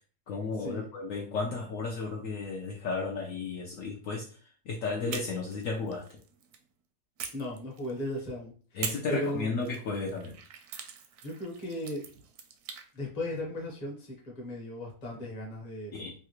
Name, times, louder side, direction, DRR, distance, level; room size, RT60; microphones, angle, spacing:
voice 1, 0.3-4.3 4.7-6.0 8.7-10.4 15.9-16.1, left 4 dB, 70° left, -1 dB, 0.9 m, -33 dB
sound 1, 5.1-6.6 7.2-8.2 8.8-12.9, right 7 dB, 80° right, 1.1 m, -43 dB
voice 2, 7.3-8.8 9.1-9.5 11.2-12.0 12.9-15.9, left 1 dB, 30° left, -2 dB, 0.9 m, -36 dB
3.2 x 2.4 x 2.9 m, 0.39 s
omnidirectional pair, 1.6 m